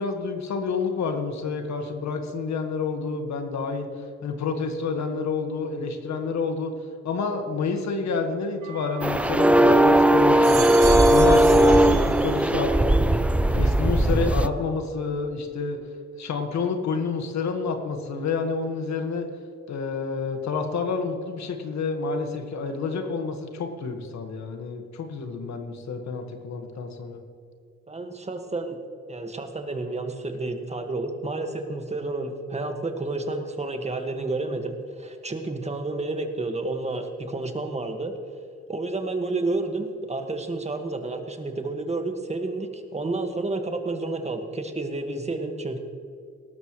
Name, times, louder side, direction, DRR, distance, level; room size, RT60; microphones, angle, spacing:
voice 1, 0.0-6.7 7.0-10.7 11.1-12.7 13.5-15.8 16.2-19.3 19.7-27.2, left 4 dB, 65° left, 5 dB, 1.7 m, -29 dB
sound 1, 8.6-9.8 10.2-12.6 13.0-13.6, right 9 dB, 90° right, 2.3 m, -36 dB
sound 2, 9.0-14.5, right 1 dB, 5° right, 0.4 m, -18 dB
voice 2, 27.9-28.8 29.1-38.1 38.7-45.8, right 2 dB, 20° right, 5 dB, 1.8 m, -30 dB
18.5 x 13.0 x 3.2 m, 2.4 s
cardioid pair, 90°, 30 cm